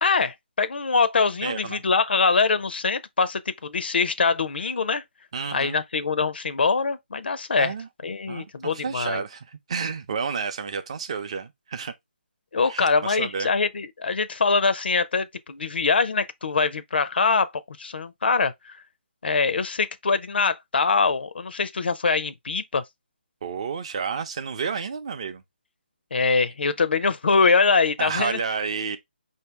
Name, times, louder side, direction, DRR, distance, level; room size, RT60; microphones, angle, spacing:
voice 1, 0.0-5.0 5.5-7.7 8.0-9.2 12.5-18.8 19.2-22.8 26.1-28.4, left 4 dB, 70° left, 0.6 m, -23 dB
voice 2, 1.4-1.8 5.3-5.8 7.6-7.9 8.3-11.9 12.7-13.5 23.4-25.4 28.0-29.0, right 5 dB, 30° right, 0.5 m, -30 dB
5.2 x 2.7 x 3.3 m
hypercardioid pair, 170°, 6 cm